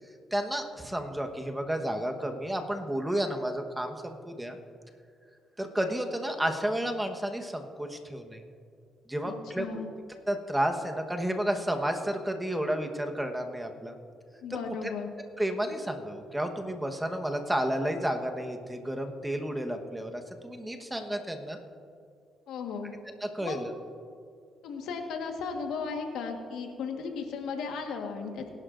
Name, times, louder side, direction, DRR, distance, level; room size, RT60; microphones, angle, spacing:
voice 1, 0.3-4.6 5.6-8.4 9.1-9.8 10.3-13.9 14.5-14.6 15.4-21.6 23.2-23.7, right 1 dB, 10° right, 5 dB, 1.2 m, -31 dB
voice 2, 9.2-9.9 14.4-15.1 22.5-22.9 23.4-23.6 24.6-28.5, left 5 dB, 85° left, 3 dB, 1.5 m, -35 dB
21.0 x 11.5 x 2.6 m, 2.4 s
cardioid pair, 90°, 0 cm